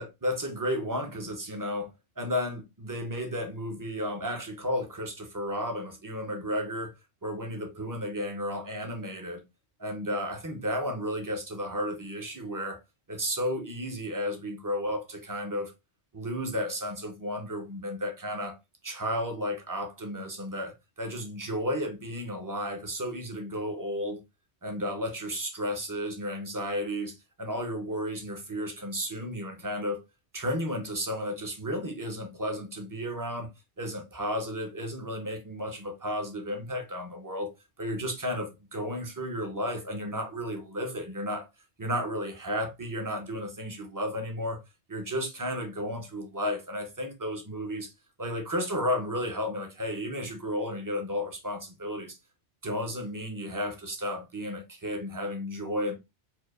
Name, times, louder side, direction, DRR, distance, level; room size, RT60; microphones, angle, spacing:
voice 1, 0.0-1.9 2.2-6.9 7.2-9.4 9.8-12.8 13.1-15.7 16.1-18.6 18.8-20.7 21.0-24.2 24.6-30.0 30.3-33.5 33.8-37.5 37.8-41.5 41.8-44.6 44.9-47.9 48.2-52.2 52.6-55.9, equal, 25° right, 0.5 m, -33 dB
4.4 x 2.4 x 2.4 m
omnidirectional pair, 1.2 m